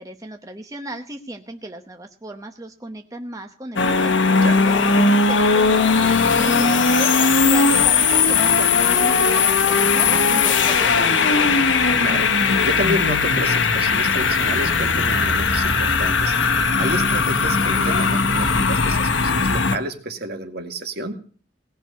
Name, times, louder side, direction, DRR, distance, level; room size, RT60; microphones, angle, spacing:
voice 1, 0.0-4.1 4.6-11.6, right 1 dB, 20° right, 5 dB, 0.9 m, -35 dB
sound 1, 3.8-19.8, left 4 dB, 85° left, 1.3 m, -18 dB
voice 2, 12.0-16.3 16.8-21.2, right 1 dB, 60° right, 6 dB, 2.1 m, -30 dB
18.0 x 6.2 x 9.3 m, 0.43 s
head